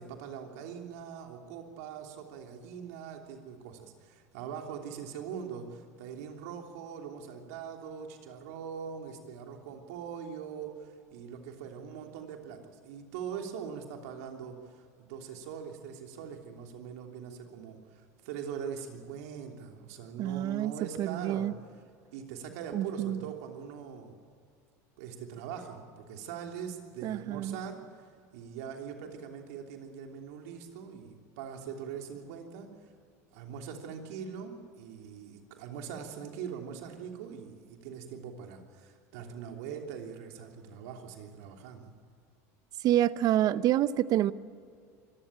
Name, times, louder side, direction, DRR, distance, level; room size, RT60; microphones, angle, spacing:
voice 1, 0.0-21.5 22.1-24.2 25.0-28.1 28.3-32.7 33.3-41.9, right 7 dB, 75° right, 3 dB, 3.2 m, -42 dB
voice 2, 20.2-20.7 21.0-21.5 22.7-23.2 27.0-27.6 42.8-44.3, right 12 dB, 50° right, 16 dB, 0.8 m, -27 dB
24.0 x 15.0 x 8.9 m, 2.3 s
supercardioid pair, 100°, 8 cm